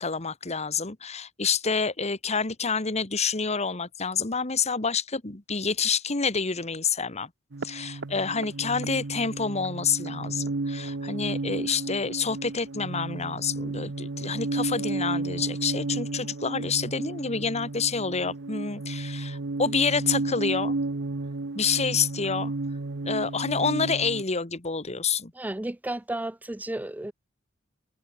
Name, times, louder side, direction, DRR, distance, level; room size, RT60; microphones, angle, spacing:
voice 1, 0.0-7.3 7.6-20.7 21.6-22.5 23.1-25.3, left 5 dB, 35° left, 1.7 m, -28 dB
sound 1, 7.5-24.2, right 2 dB, 65° right, 0.9 m, -33 dB
voice 2, 25.3-27.1, right 1 dB, 10° right, 0.5 m, -33 dB
head